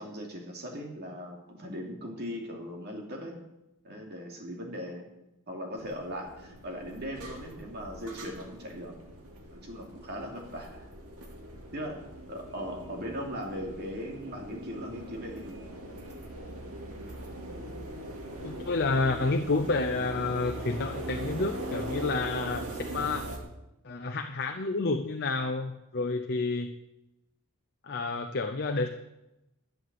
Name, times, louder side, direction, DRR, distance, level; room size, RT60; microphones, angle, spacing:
voice 1, 0.0-3.4 3.8-5.1 5.5-8.9 9.5-10.9 11.7-12.0 12.3-15.6, equal, 45° right, 0 dB, 2.9 m, -39 dB
sound 1, 5.8-23.4, right 1 dB, 85° right, 2.6 m, -41 dB
voice 2, 18.4-22.6 22.9-23.2 23.8-26.7 27.8-28.9, left 3 dB, 50° left, 6 dB, 0.7 m, -29 dB
12.0 x 7.9 x 7.7 m, 0.92 s
head